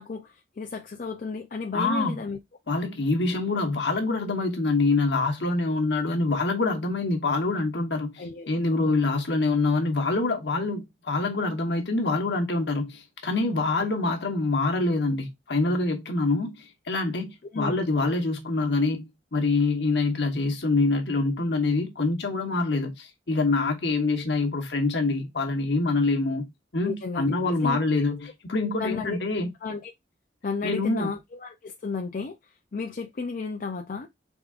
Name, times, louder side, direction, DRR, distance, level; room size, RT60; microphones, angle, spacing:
voice 1, 0.0-2.4 8.2-8.9 17.5-17.7 26.8-27.3 27.6-27.8 28.8-29.2 29.6-29.9 30.4-32.4 32.7-34.1, left 4 dB, 50° left, 0.5 m, -33 dB
voice 2, 1.7-2.2 2.7-19.0 19.3-26.5 26.7-29.5 30.6-31.1, left 3 dB, 70° left, 1.1 m, -25 dB
4.9 x 3.6 x 2.4 m
head